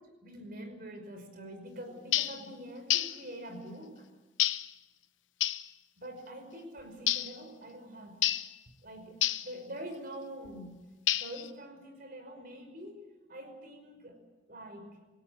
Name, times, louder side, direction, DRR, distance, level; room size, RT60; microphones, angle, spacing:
voice 1, 0.0-4.1 6.0-8.2 8.8-9.2 9.4-10.7 11.2-13.0 13.3-14.2 14.5-14.9, right 1 dB, 50° right, 7 dB, 5.2 m, -45 dB
sound 1, 2.1-2.4 2.9-3.2 4.4-4.7 5.4-5.7 7.1-7.4 8.2-8.5 9.2-9.5 11.1-11.5, left 13 dB, 75° left, 0.8 m, -29 dB
28.0 x 17.5 x 8.1 m, 1.2 s
head